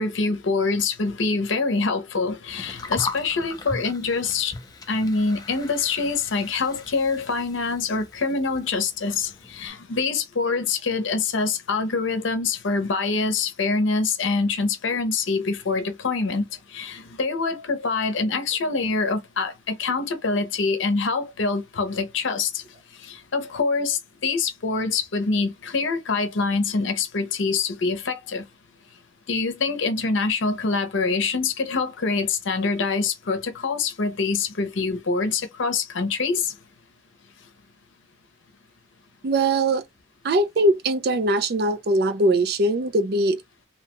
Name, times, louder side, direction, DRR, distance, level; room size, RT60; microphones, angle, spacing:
voice 1, 0.0-4.5 4.9-22.6 23.0-28.4 29.3-36.5, left 4 dB, 80° left, 0.7 m, -25 dB
Gurgling, 2.5-9.7, left 3 dB, 20° left, 0.4 m, -38 dB
voice 2, 39.2-39.8 40.2-43.4, right 1 dB, 55° right, 0.4 m, -21 dB
2.7 x 2.2 x 2.9 m
head